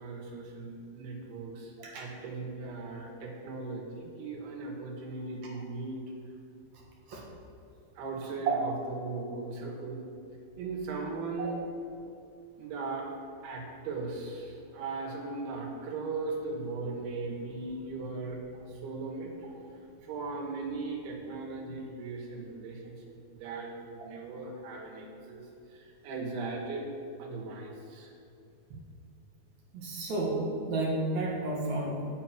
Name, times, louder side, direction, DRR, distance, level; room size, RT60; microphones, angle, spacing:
voice 1, 0.0-6.1 8.0-10.1 10.6-11.6 12.6-13.1 13.4-18.4 18.7-19.4 20.0-23.0 23.3-25.4 25.7-26.9 27.2-28.1, right 3 dB, 85° right, -1 dB, 3.5 m, -38 dB
voice 2, 29.7-30.4 30.7-32.1, right 2 dB, 55° right, -3 dB, 2.6 m, -32 dB
8.6 x 6.8 x 5.9 m, 2.7 s
omnidirectional pair, 4.4 m